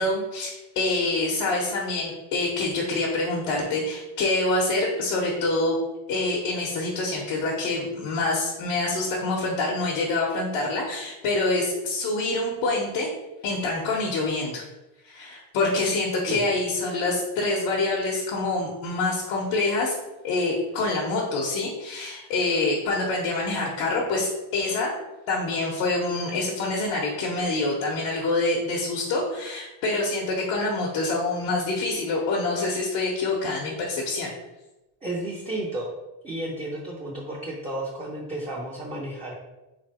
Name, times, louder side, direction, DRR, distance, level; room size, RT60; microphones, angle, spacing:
voice 1, 0.0-5.8 6.1-13.1 13.4-14.6 15.0-20.0 20.2-24.9 25.3-34.3, left 2 dB, 80° left, -4 dB, 1.1 m, -26 dB
voice 2, 35.0-35.9 36.2-39.4, right 1 dB, 15° right, -4 dB, 0.6 m, -32 dB
3.4 x 3.3 x 4.2 m, 1.0 s
cardioid pair, 130°, 47 cm